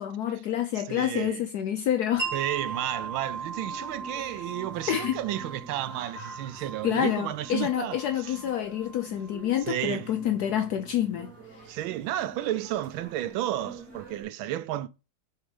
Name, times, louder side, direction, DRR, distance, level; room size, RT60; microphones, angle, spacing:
voice 1, 0.0-2.3 4.1-4.4 4.9-5.2 6.8-11.8, left 10 dB, 75° left, 0.9 m, -28 dB
voice 2, 0.9-1.5 2.3-8.4 9.7-10.1 11.7-14.9, right 13 dB, 85° right, 1.4 m, -32 dB
sound 1, 2.1-14.2, right 2 dB, 5° right, 2.4 m, -47 dB
Wind chime, 2.2-9.8, right 5 dB, 65° right, 2.5 m, -38 dB
4.6 x 4.4 x 4.9 m
omnidirectional pair, 2.1 m